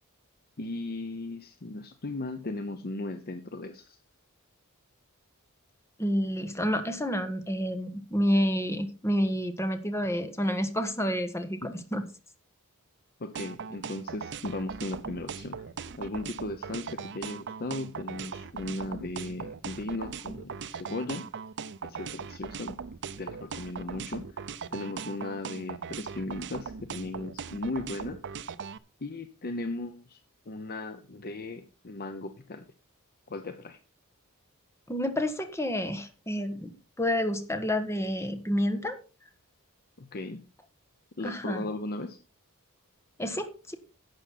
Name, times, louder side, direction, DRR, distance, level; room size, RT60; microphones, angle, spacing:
voice 1, 0.6-4.0 11.6-11.7 13.2-15.6 15.9-21.3 21.8-22.7 23.2-28.2 29.0-30.2 30.5-32.6 33.3-33.8 40.0-40.4 41.2-42.2, left 2 dB, 45° left, 0.8 m, -37 dB
voice 2, 6.0-12.0 34.9-39.0 41.2-41.6 43.2-43.7, equal, 15° left, 1.4 m, -29 dB
sound 1, 13.4-28.8, right 6 dB, 55° right, 0.6 m, -39 dB
11.5 x 8.0 x 4.2 m
head